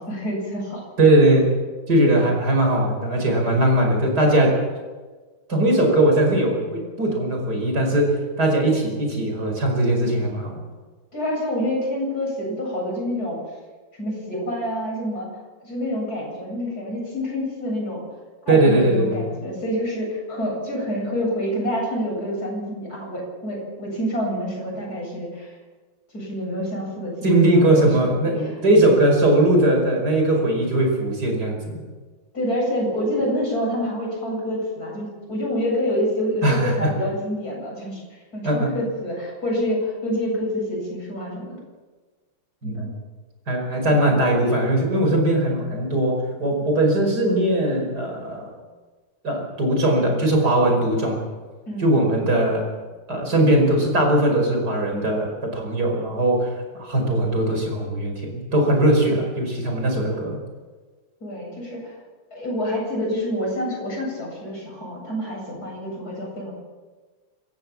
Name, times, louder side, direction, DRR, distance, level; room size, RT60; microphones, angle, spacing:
voice 1, 0.0-0.8 11.1-13.4 14.0-15.3 15.6-18.0 18.4-25.5 26.1-27.9 28.3-28.5 32.3-38.0 38.3-41.6 42.6-42.9 51.7-52.0 61.2-62.0 62.3-66.5, equal, 50° left, -2 dB, 8.6 m, -27 dB
voice 2, 1.0-1.5 1.9-4.6 5.5-10.6 18.5-19.3 27.2-31.8 36.4-36.9 38.4-38.7 42.6-42.9 43.5-48.5 49.2-51.2 51.8-52.6 53.1-56.5 56.8-60.4, right 1 dB, 55° right, 1 dB, 5.7 m, -20 dB
26.5 x 14.5 x 7.5 m, 1.3 s
omnidirectional pair, 2.1 m